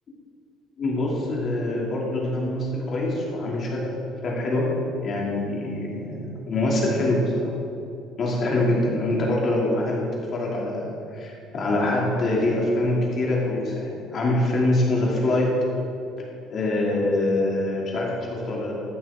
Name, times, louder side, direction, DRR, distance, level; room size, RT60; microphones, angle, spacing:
voice 1, 0.8-3.9 4.2-4.7 5.0-7.5 8.2-10.0 10.3-15.6 16.5-18.7, left 1 dB, 35° left, -3 dB, 2.6 m, -24 dB
13.5 x 11.0 x 3.7 m, 2.7 s
cardioid pair, 170°, 0 cm